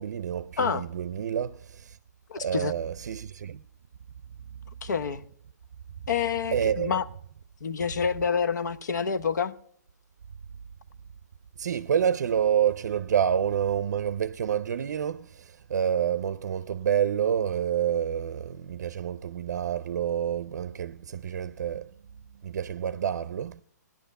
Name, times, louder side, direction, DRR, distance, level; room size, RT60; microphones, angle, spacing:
voice 1, 0.0-2.0 2.4-3.6 6.5-7.0 11.6-21.9 22.4-23.6, right 8 dB, 65° right, 0.5 m, -28 dB
voice 2, 2.3-2.7 4.8-5.2 6.1-7.1 7.6-9.6, left 6 dB, 75° left, 0.9 m, -28 dB
17.0 x 11.0 x 5.3 m
hypercardioid pair, 155°, 10 cm